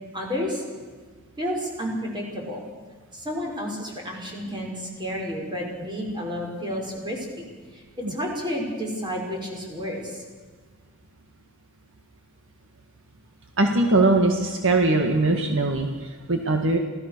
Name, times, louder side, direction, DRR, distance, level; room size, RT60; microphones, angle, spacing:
voice 1, 0.1-0.6 1.4-2.6 3.1-7.5 7.7-7.8 8.1-10.2, equal, 20° right, -1 dB, 5.8 m, -31 dB
voice 2, 13.6-16.8, right 2 dB, 60° right, 4 dB, 1.8 m, -21 dB
27.0 x 17.0 x 6.8 m, 1.5 s
head